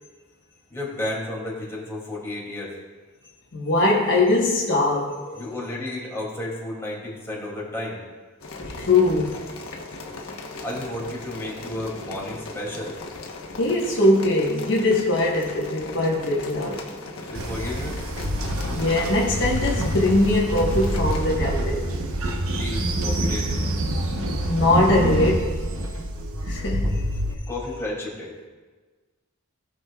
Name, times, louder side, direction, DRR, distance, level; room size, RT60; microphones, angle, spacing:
voice 1, 0.7-2.7 5.4-8.0 10.6-13.0 17.3-18.0 22.5-23.5 26.8-26.9 27.5-28.3, left 1 dB, 15° left, -5 dB, 2.6 m, -32 dB
voice 2, 3.5-5.4 8.6-9.4 13.6-16.8 18.7-21.9 24.5-25.5 26.4-26.8, left 2 dB, 55° left, -4 dB, 1.3 m, -21 dB
sound 1, 8.4-21.3, left 2 dB, 80° left, 1.1 m, -38 dB
Train, 17.3-27.3, right 1 dB, 85° right, 1.0 m, -26 dB
18.0 x 6.2 x 2.4 m, 1.4 s
head